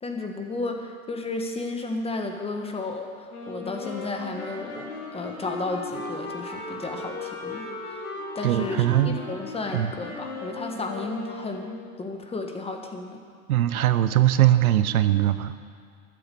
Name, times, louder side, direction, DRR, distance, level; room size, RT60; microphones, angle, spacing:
voice 1, 0.0-8.0 8.3-13.2, left 3 dB, 15° left, 4 dB, 1.4 m, -33 dB
Wind instrument woodwind instrument, 3.3-12.0, left 2 dB, 85° left, 3.6 m, -37 dB
Wind instrument woodwind instrument 2, 3.6-11.9, left 4 dB, 65° left, 2.6 m, -43 dB
voice 2, 8.4-9.2 9.7-9.9 13.5-15.5, right 13 dB, 75° right, 12 dB, 0.8 m, -21 dB
13.0 x 9.2 x 6.9 m, 2.2 s
hypercardioid pair, 110°, 44 cm